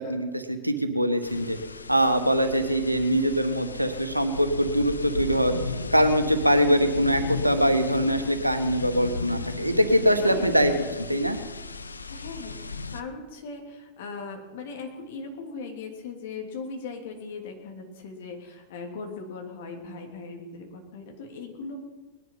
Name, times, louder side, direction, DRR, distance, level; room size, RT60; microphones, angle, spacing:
voice 1, 0.0-1.6 1.9-5.5 5.9-11.4, equal, 85° right, 7 dB, 1.4 m, -23 dB
sound 1, 1.2-13.0, left 4 dB, 80° left, 0.7 m, -35 dB
voice 2, 10.2-10.5 12.1-21.8, left 4 dB, 55° left, 2 dB, 2.9 m, -39 dB
20.0 x 11.0 x 5.7 m, 1.2 s
figure-of-eight pair, 90°, 0 cm